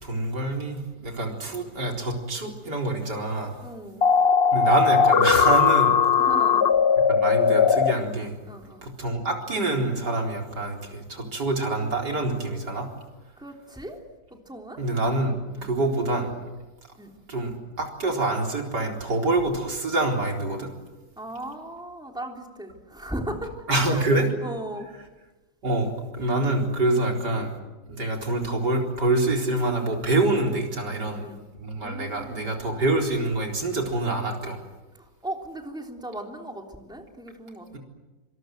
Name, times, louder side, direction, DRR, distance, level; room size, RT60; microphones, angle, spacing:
voice 1, 0.0-3.6 4.5-6.0 7.1-8.4 8.8-12.9 14.8-16.3 17.3-20.7 23.7-24.3 25.6-27.5 27.9-31.2 31.6-34.6, right 2 dB, 80° right, 1 dB, 4.7 m, -26 dB
voice 2, 3.6-4.0 6.2-6.7 8.4-8.8 13.4-14.0 14.3-14.8 15.5-15.8 16.9-17.1 21.2-24.1 24.4-24.9 30.9-31.4 31.8-32.6 34.9-37.8, right 1 dB, ahead, 2 dB, 3.2 m, -37 dB
sound 1, 4.0-7.9, left 6 dB, 40° left, 1.1 m, -19 dB
26.5 x 25.5 x 7.9 m, 1.1 s
omnidirectional pair, 1.8 m